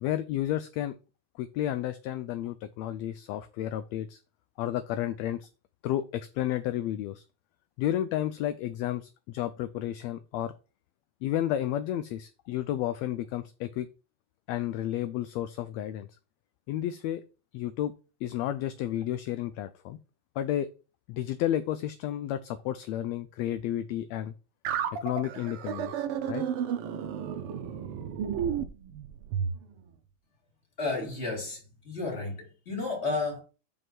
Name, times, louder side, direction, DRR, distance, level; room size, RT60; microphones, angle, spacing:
voice 1, 0.0-0.9 1.4-4.2 4.6-5.5 5.8-7.2 7.8-10.5 11.2-13.9 14.5-16.1 16.7-17.2 17.5-17.9 18.2-20.0 20.4-20.7 21.1-24.3 25.0-26.4, left 12 dB, 80° left, 1.6 m, -32 dB
sound 1, 24.6-29.6, right 8 dB, 70° right, 1.4 m, -32 dB
voice 2, 30.8-31.6 31.8-33.4, left 3 dB, 20° left, 2.9 m, -32 dB
5.6 x 5.5 x 6.1 m
omnidirectional pair, 3.4 m